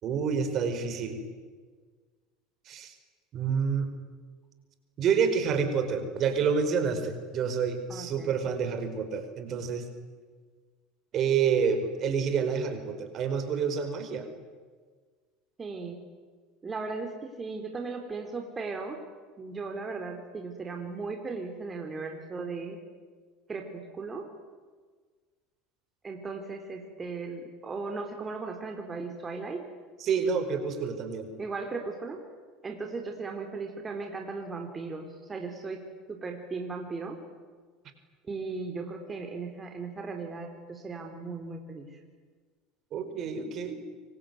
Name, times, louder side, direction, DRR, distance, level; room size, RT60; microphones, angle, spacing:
voice 1, 0.0-1.2 2.7-2.9 3.3-3.9 5.0-9.9 11.1-14.3 30.0-31.3 42.9-43.8, right 6 dB, 45° right, 8 dB, 4.9 m, -28 dB
voice 2, 7.9-8.5 15.6-16.1 16.6-19.0 19.4-22.8 23.5-24.3 26.0-29.6 31.4-32.2 32.6-37.2 38.3-42.0, right 4 dB, 25° right, 3 dB, 4.1 m, -37 dB
25.5 x 24.0 x 9.6 m, 1.5 s
hypercardioid pair, 80°, 0 cm